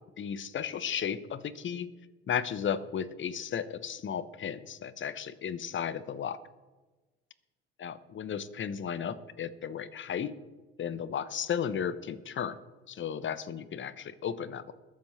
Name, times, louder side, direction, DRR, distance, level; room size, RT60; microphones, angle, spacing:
voice 1, 0.2-1.9 2.3-6.4 7.8-10.3 10.8-12.6 12.9-14.7, left 8 dB, 35° left, 15 dB, 1.0 m, -34 dB
21.5 x 7.5 x 4.4 m, 1.2 s
hypercardioid pair, 65°, 32 cm